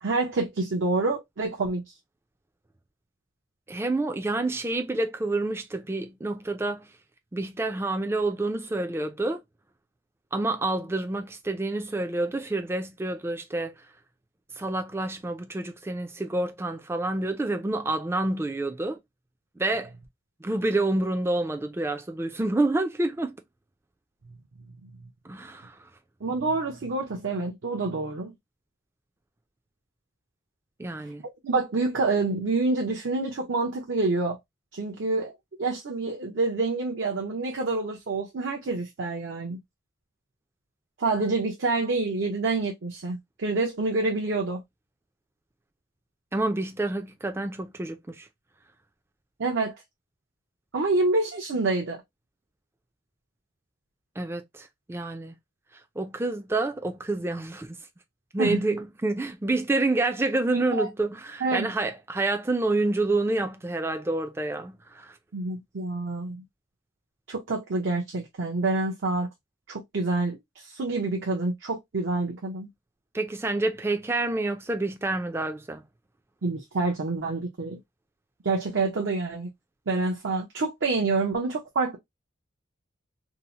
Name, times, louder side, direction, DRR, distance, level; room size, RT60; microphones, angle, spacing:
voice 1, 0.0-1.8 24.8-24.9 26.2-28.3 31.4-34.4 34.7-35.3 35.6-39.6 41.0-44.6 49.4-49.8 50.7-52.0 58.4-58.6 60.8-60.9 61.4-61.7 65.3-66.4 67.3-69.3 69.7-72.7 76.4-77.8 78.4-79.5 79.9-82.0, right 3 dB, 70° right, 0.6 m, -27 dB
voice 2, 3.7-6.9 7.3-9.4 10.3-13.7 14.6-19.0 19.6-19.9 20.4-23.4 25.2-25.8 30.8-31.2 46.3-48.3 54.2-55.3 56.0-57.7 58.3-65.2 73.1-75.8, right 2 dB, 15° right, 0.3 m, -28 dB
2.7 x 2.0 x 2.7 m
head